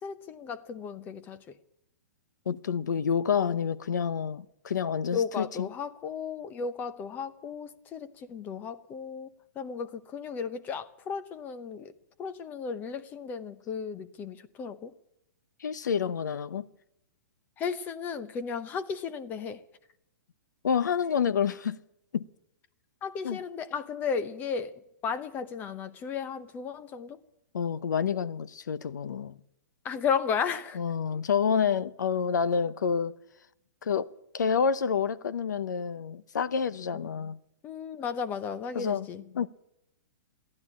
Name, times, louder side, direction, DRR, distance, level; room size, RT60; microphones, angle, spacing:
voice 1, 0.0-1.6 5.1-11.9 12.2-14.9 17.6-19.6 23.0-27.2 29.8-30.8 37.2-37.3 37.6-39.2, left 6 dB, 20° left, 0.8 m, -34 dB
voice 2, 2.5-5.7 15.6-16.6 20.6-21.8 22.1-22.3 23.2-23.4 27.5-29.4 30.7-33.1 33.8-34.1 34.3-37.4 38.7-39.1 39.3-39.5, left 7 dB, 85° left, 0.8 m, -28 dB
15.5 x 11.0 x 8.5 m
hypercardioid pair, 155°, 10 cm